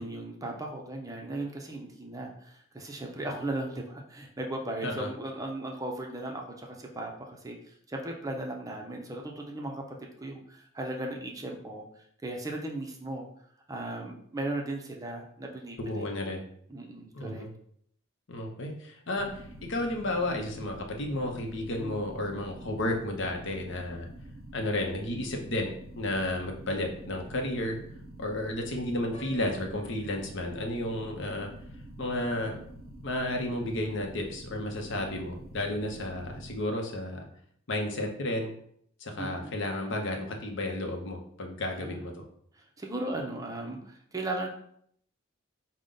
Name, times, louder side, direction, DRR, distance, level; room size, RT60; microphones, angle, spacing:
voice 1, 0.0-13.3 13.7-16.1 16.7-17.5 21.8-22.0 39.2-39.6 41.7-42.0 42.5-44.5, right 2 dB, 15° right, 1 dB, 0.5 m, -37 dB
voice 2, 15.8-16.5 17.1-17.5 18.3-24.1 24.5-27.8 28.2-31.5 32.0-32.6 33.0-37.2 37.7-38.5 39.0-42.2, left 1 dB, 60° left, 2 dB, 0.7 m, -32 dB
sound 1, 19.2-36.6, right 1 dB, 75° right, 0.5 m, -47 dB
Piano, 29.1-31.1, right 3 dB, 35° left, 0.9 m, -51 dB
4.9 x 2.1 x 3.8 m, 0.65 s
head